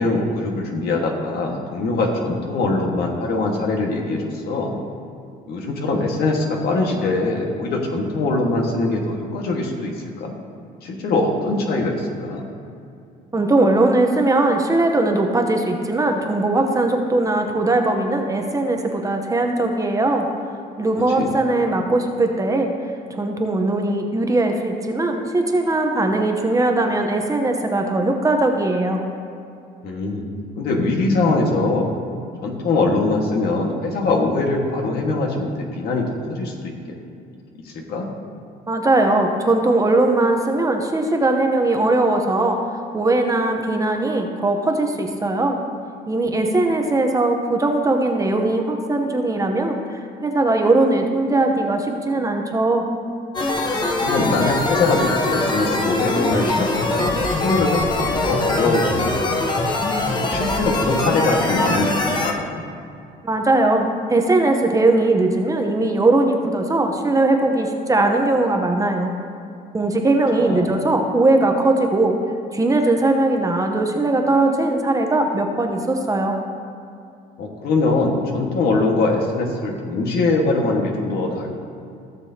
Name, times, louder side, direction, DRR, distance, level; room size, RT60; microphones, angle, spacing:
voice 1, 0.0-4.8 5.5-10.3 10.8-12.5 21.1-21.3 29.8-30.3 30.6-31.9 32.4-35.5 35.7-36.7 37.6-38.1 46.2-46.4 54.0-59.4 60.1-62.6 70.4-70.8 77.4-81.6, left 2 dB, 70° left, 1 dB, 1.7 m, -22 dB
voice 2, 13.3-20.3 20.8-22.7 23.1-29.0 38.7-42.6 42.9-45.6 46.1-52.8 63.2-69.1 69.7-72.2 72.5-76.4, right 2 dB, 20° right, 3 dB, 0.9 m, -19 dB
sound 1, 53.3-62.3, left 2 dB, 25° left, 1.1 m, -22 dB
16.0 x 6.9 x 2.9 m, 2.5 s
cardioid pair, 110°, 17 cm